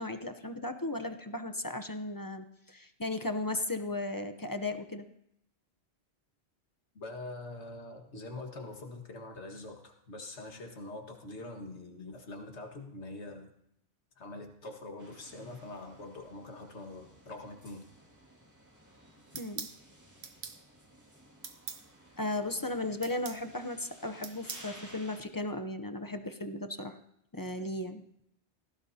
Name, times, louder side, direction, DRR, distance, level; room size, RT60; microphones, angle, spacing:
voice 1, 0.0-5.1 19.3-19.7 22.2-27.0 27.3-28.0, left 2 dB, 25° left, 7 dB, 0.6 m, -36 dB
voice 2, 6.9-13.5 14.2-17.9, left 2 dB, 85° left, 3 dB, 2.0 m, -44 dB
sound 1, 15.0-25.2, right 1 dB, 15° right, 2.2 m, -57 dB
sound 2, 19.3-19.8 20.2-20.6 21.4-21.8 23.0-23.4 24.2-24.7, right 6 dB, 75° right, 1.3 m, -41 dB
17.5 x 15.5 x 2.8 m, 0.77 s
omnidirectional pair, 1.1 m